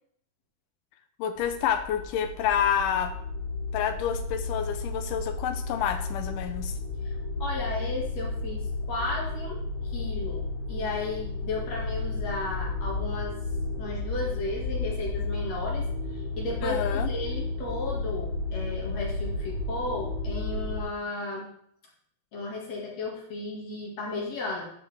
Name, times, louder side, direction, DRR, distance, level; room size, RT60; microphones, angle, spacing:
voice 1, 1.2-3.1 3.7-6.7 16.6-17.1, left 9 dB, 80° left, 8 dB, 2.0 m, -28 dB
sound 1, 1.4-20.8, left 3 dB, 65° right, 3.6 m, -32 dB
voice 2, 7.0-9.7 9.9-13.4 13.8-21.5 22.3-24.6, left 2 dB, 55° left, -3 dB, 2.9 m, -34 dB
13.5 x 5.1 x 3.4 m, 0.66 s
omnidirectional pair, 3.9 m